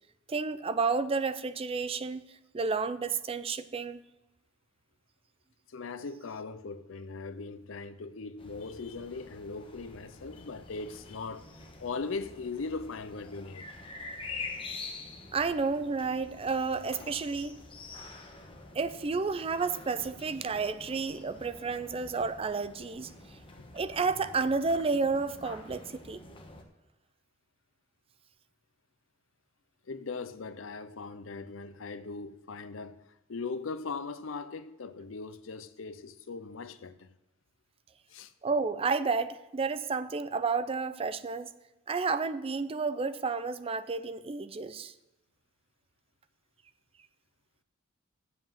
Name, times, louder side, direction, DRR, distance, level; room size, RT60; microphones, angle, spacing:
voice 1, 0.3-2.2 2.5-4.0 15.3-17.6 18.7-23.1 23.7-26.2 38.4-41.5 41.9-44.9, right 4 dB, 30° right, 0.5 m, -31 dB
voice 2, 5.7-13.7 23.6-23.7 29.9-33.0 33.3-37.1 38.1-38.3, left 4 dB, 80° left, 0.6 m, -39 dB
sound 1, 8.4-26.6, left 3 dB, 25° left, 1.2 m, -47 dB
7.6 x 7.5 x 7.5 m
head